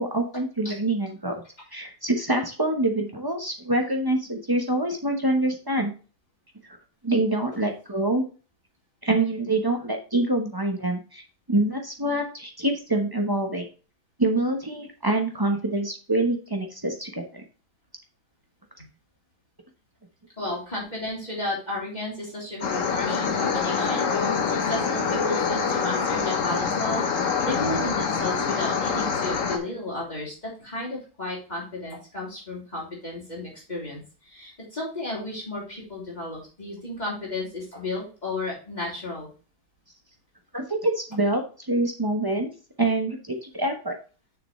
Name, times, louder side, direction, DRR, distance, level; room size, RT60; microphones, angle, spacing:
voice 1, 0.0-1.4 1.7-5.9 6.7-6.8 7.0-8.2 9.0-11.2 11.5-13.7 14.2-17.4 40.5-42.5 42.8-43.9, right 2 dB, 35° right, 3 dB, 0.3 m, -25 dB
voice 2, 20.4-39.3, left 2 dB, 20° left, -5 dB, 3.6 m, -33 dB
sound 1, 22.6-29.6, left 5 dB, 50° left, 1.1 m, -25 dB
6.9 x 6.8 x 3.1 m, 0.36 s
omnidirectional pair, 2.2 m